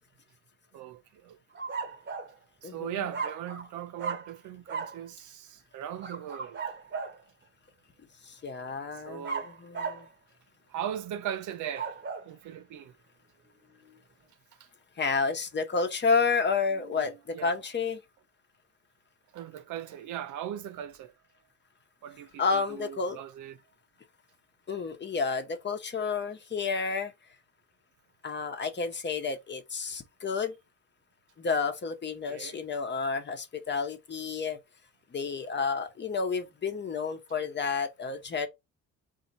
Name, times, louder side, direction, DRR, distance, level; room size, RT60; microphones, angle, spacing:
voice 1, 0.7-1.4 2.6-6.6 8.6-8.8 9.0-9.5 10.7-11.9 12.2-12.9 14.6-14.7 16.7-17.5 19.3-21.1 22.0-23.6 32.3-32.6, right 10 dB, 80° right, 0.7 m, -39 dB
sound 1, 1.5-2.3 3.1-3.7 4.0-4.3 4.7-5.0 6.0-7.2 9.2-10.1 11.5-12.3, right 5 dB, 40° right, 1.1 m, -36 dB
voice 2, 2.6-3.0 8.3-10.1 15.0-18.0 22.4-23.2 24.7-27.1 28.2-30.5 31.4-34.6 35.1-38.5, left 5 dB, 35° left, 0.9 m, -30 dB
3.9 x 2.8 x 4.2 m
cardioid pair, 90°, 30 cm